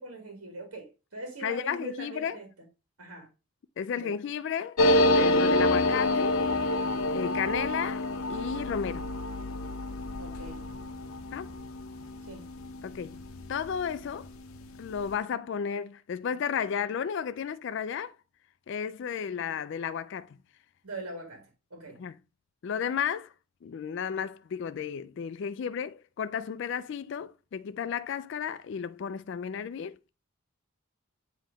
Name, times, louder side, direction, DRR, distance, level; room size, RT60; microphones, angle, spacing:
voice 1, 0.0-2.5 3.0-3.3 4.0-4.1 10.2-10.6 12.2-12.4 20.8-21.5 21.7-22.0, right 1 dB, 85° right, 1.7 m, -41 dB
voice 2, 1.4-2.4 3.8-6.4 7.1-9.1 11.3-11.5 12.8-13.2 13.5-14.3 14.8-18.1 18.7-20.4 22.0-22.2 22.6-23.3 23.6-30.0, left 7 dB, 55° left, 0.3 m, -33 dB
sound 1, 4.8-13.9 14.2-14.3 14.5-15.1, left 1 dB, 75° left, 0.7 m, -28 dB
7.6 x 3.0 x 5.0 m
head